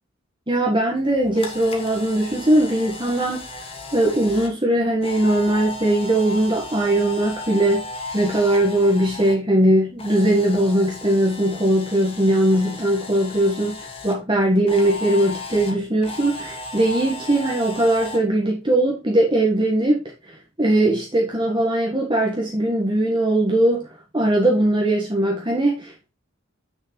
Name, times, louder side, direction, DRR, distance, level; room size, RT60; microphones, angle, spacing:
voice 1, 0.5-3.4 3.9-7.8 8.1-26.1, right 1 dB, 25° right, 1.5 m, -20 dB
Camera, 1.0-9.4 9.7-14.1 14.7-18.2, left 2 dB, 25° left, 1.5 m, -35 dB
7.7 x 6.2 x 3.2 m
head